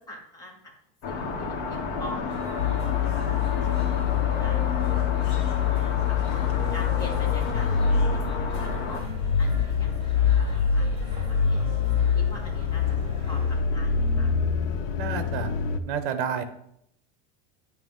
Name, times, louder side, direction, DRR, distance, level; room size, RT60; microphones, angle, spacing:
voice 1, 0.1-0.7 1.0-4.6 4.9-6.2 6.7-7.9 8.1-9.0 9.4-11.6 12.1-13.0 13.3-14.3, left 1 dB, 10° left, -1 dB, 1.2 m, -44 dB
sound 1, 1.0-9.0, left 4 dB, 45° left, 1.3 m, -32 dB
sound 2, 2.3-13.6, right 1 dB, 20° right, 2.3 m, -44 dB
sound 3, 2.6-15.8, left 7 dB, 75° left, 0.7 m, -25 dB
voice 2, 15.0-15.5 15.9-16.4, right 7 dB, 55° right, 10 dB, 0.9 m, -30 dB
9.0 x 3.2 x 5.4 m, 0.75 s
cardioid pair, 175°, 29 cm